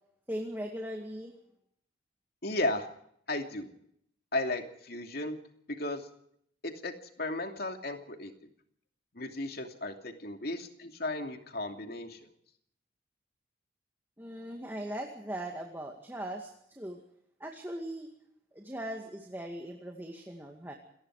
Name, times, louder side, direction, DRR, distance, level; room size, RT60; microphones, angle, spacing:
voice 1, 0.3-1.3 14.2-17.0 17.4-18.1 18.5-20.7, right 1 dB, 10° right, 2 dB, 2.1 m, -39 dB
voice 2, 2.4-2.9 3.3-3.7 4.3-5.4 5.7-6.1 6.6-8.3 9.1-12.2, left 2 dB, 55° left, 5 dB, 2.8 m, -35 dB
28.5 x 19.5 x 4.9 m, 0.70 s
head